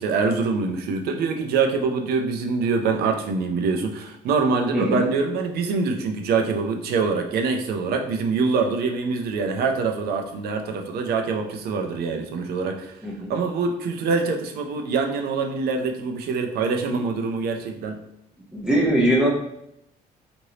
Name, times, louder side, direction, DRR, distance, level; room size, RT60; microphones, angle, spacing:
voice 1, 0.0-13.0 13.3-18.0, right 4 dB, 70° right, 4 dB, 0.5 m, -24 dB
voice 2, 4.7-5.0 13.0-13.3 18.5-19.3, right 1 dB, 5° right, -3 dB, 0.8 m, -21 dB
3.1 x 2.6 x 2.8 m, 0.79 s
cardioid pair, 110°, 17 cm